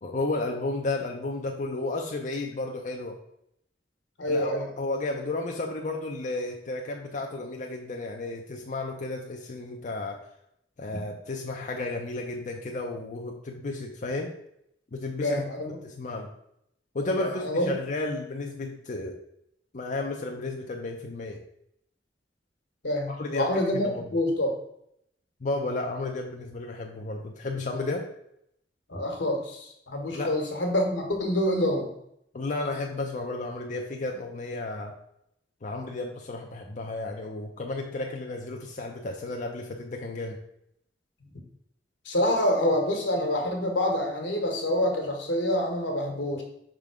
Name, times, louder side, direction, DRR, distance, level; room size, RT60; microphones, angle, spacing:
voice 1, 0.0-3.2 4.3-10.2 10.8-14.3 14.9-15.4 15.8-16.3 16.9-19.2 19.7-21.4 23.1-24.0 25.4-28.1 30.1-30.3 32.3-34.9 35.6-40.4, left 2 dB, 45° left, 1 dB, 0.5 m, -33 dB
voice 2, 4.2-4.7 15.2-15.8 17.0-17.7 22.8-24.5 28.9-31.9 42.0-46.4, left 1 dB, 80° left, 2 dB, 1.4 m, -27 dB
5.4 x 3.7 x 4.8 m, 0.75 s
head